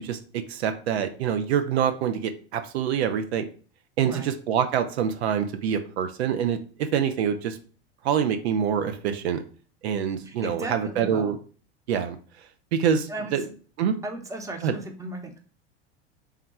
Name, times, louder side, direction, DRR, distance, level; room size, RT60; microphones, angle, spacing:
voice 1, 0.0-3.5 4.0-7.6 8.0-9.4 9.8-11.4 11.9-12.2 12.7-13.4 13.8-14.0 14.6-14.7, right 8 dB, 80° right, 9 dB, 0.6 m, -26 dB
voice 2, 10.2-11.3 13.1-13.3 14.0-15.4, right 2 dB, 10° right, 4 dB, 0.8 m, -35 dB
3.6 x 2.2 x 4.1 m, 0.40 s
hypercardioid pair, 90°, 32 cm